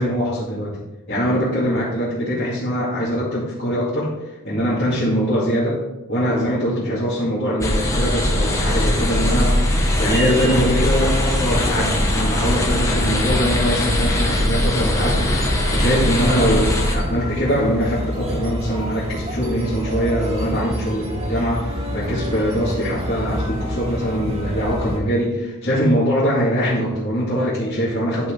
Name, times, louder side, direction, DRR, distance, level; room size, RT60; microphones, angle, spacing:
voice 1, 0.0-4.1 4.4-5.8 6.1-28.3, equal, 45° left, -10 dB, 2.3 m, -22 dB
sound 1, 7.6-17.0, left 1 dB, 15° left, 1.2 m, -20 dB
sound 2, 15.0-25.0, equal, 30° right, 2.0 m, -28 dB
11.0 x 5.2 x 3.8 m, 0.98 s
head